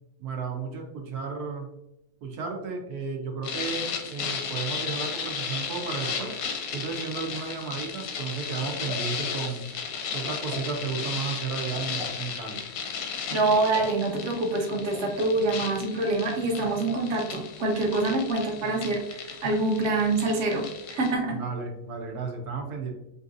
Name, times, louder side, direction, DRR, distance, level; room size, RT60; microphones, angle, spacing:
voice 1, 0.2-1.7 2.2-6.4 6.7-9.6 10.1-12.6 21.3-22.9, right 5 dB, 85° right, 1 dB, 1.3 m, -33 dB
sound 1, 3.4-21.1, left 6 dB, 85° left, 1.2 m, -35 dB
sound 2, 8.6-9.1 10.3-10.7 11.8-12.2 13.3-14.0 14.9-15.5 15.7-15.8 16.7-17.1, left 2 dB, 5° right, 0.8 m, -40 dB
voice 2, 13.3-20.6 20.9-21.4, right 2 dB, 55° right, 1 dB, 1.0 m, -26 dB
5.6 x 2.6 x 2.5 m, 0.91 s
omnidirectional pair, 1.6 m